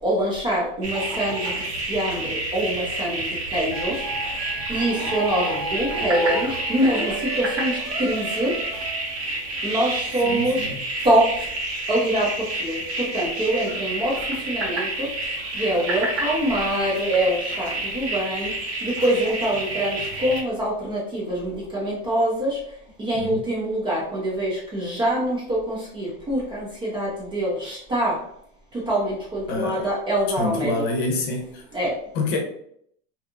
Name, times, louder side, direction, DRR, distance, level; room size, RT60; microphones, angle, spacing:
voice 1, 0.0-8.6 9.6-10.7 11.0-11.5 11.9-18.5 18.8-22.6 23.0-28.2 28.7-30.7 31.7-32.0, right 1 dB, 15° right, -5 dB, 0.5 m, -25 dB
sound 1, 0.8-20.4, right 1 dB, 70° right, 1.3 m, -29 dB
sound 2, 3.7-9.2, right 2 dB, 35° right, 1.0 m, -35 dB
voice 2, 10.2-10.9 23.1-23.4 29.5-29.9 30.3-31.6 32.1-32.4, left 3 dB, 50° left, 2 dB, 0.8 m, -27 dB
2.7 x 2.3 x 2.5 m, 0.68 s
supercardioid pair, 150°, 33 cm